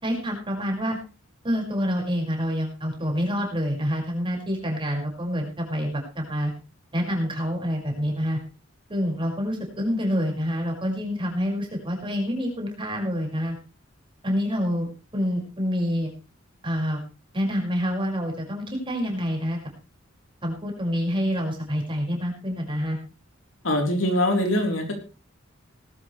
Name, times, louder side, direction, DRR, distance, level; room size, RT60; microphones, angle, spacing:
voice 1, 0.0-1.0 1.4-6.5 6.9-8.4 8.9-13.6 14.2-16.1 16.6-17.0 17.3-19.6 20.4-23.0, equal, 25° right, 0 dB, 5.7 m, -27 dB
voice 2, 23.6-25.0, left 1 dB, 70° left, 3 dB, 3.9 m, -23 dB
19.0 x 12.5 x 3.3 m, 0.32 s
head